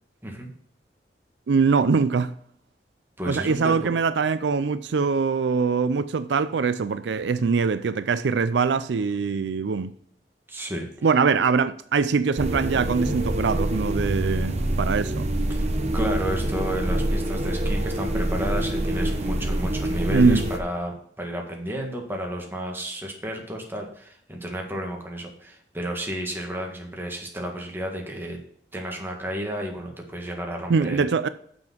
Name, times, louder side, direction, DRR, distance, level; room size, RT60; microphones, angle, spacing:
voice 1, 1.5-2.3 3.2-9.9 11.0-15.3 20.1-20.4 30.7-31.3, right 5 dB, 80° right, 0.4 m, -23 dB
voice 2, 3.2-3.8 10.5-10.9 15.5-15.7 15.9-28.4 28.7-31.1, equal, 15° right, 1.7 m, -32 dB
sound 1, 12.4-20.6, right 1 dB, 40° right, 1.0 m, -26 dB
6.9 x 6.0 x 6.0 m
head